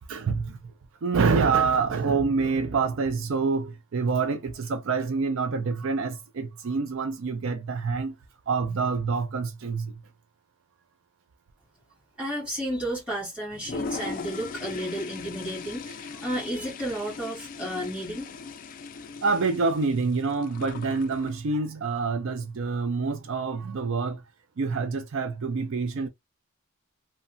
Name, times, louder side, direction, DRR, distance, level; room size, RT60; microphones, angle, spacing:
voice 1, 0.1-0.6 1.0-8.2 8.5-9.9 19.2-24.2 24.6-26.1, right 4 dB, 60° right, 0.4 m, -26 dB
voice 2, 12.2-18.3, equal, 5° right, 1.6 m, -32 dB
Toilet flush, 13.5-21.4, left 4 dB, 40° left, 0.3 m, -39 dB
2.8 x 2.2 x 2.6 m
head